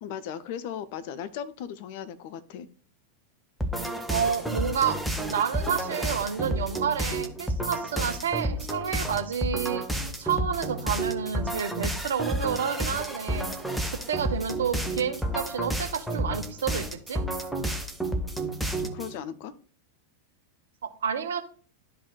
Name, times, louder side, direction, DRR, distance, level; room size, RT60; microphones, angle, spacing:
voice 1, 0.0-2.7 18.8-19.5, left 9 dB, 50° left, 12 dB, 0.6 m, -37 dB
sound 1, 3.6-19.1, right 1 dB, ahead, 0.8 m, -31 dB
voice 2, 4.1-5.0 5.3-9.8 10.2-13.5 13.9-17.2 20.8-21.4, right 7 dB, 65° right, 7 dB, 0.8 m, -29 dB
12.0 x 4.0 x 2.3 m, 0.42 s
figure-of-eight pair, 90°, 0 cm